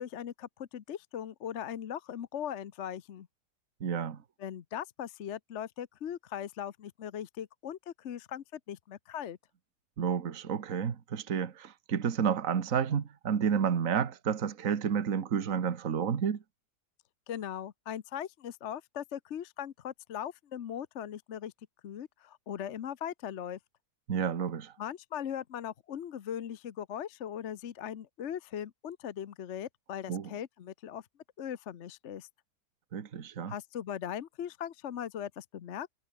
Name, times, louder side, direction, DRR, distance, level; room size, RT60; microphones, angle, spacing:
voice 1, 0.0-3.3 4.4-9.4 17.3-21.5 21.8-23.6 24.8-31.0 31.4-32.3 33.5-35.9, left 9 dB, 55° left, 1.0 m, -39 dB
voice 2, 3.8-4.2 10.0-16.4 24.1-24.7 30.1-30.3 32.9-33.6, right 7 dB, 55° right, 1.7 m, -30 dB
omnidirectional pair, 1.7 m